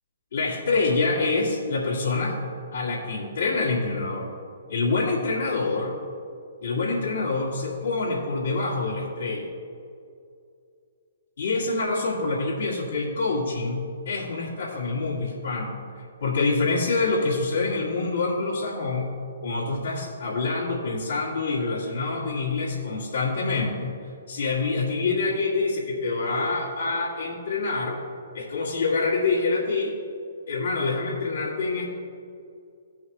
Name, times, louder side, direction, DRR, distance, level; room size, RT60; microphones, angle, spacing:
voice 1, 0.3-2.4 2.7-4.3 4.7-5.9 6.6-9.5 11.4-15.8 16.2-19.1 19.4-23.9 24.3-28.0 28.3-29.9 30.5-31.8, left 3 dB, 70° left, -8 dB, 2.2 m, -26 dB
15.0 x 5.6 x 3.1 m, 2.4 s
hypercardioid pair, 135°, 0 cm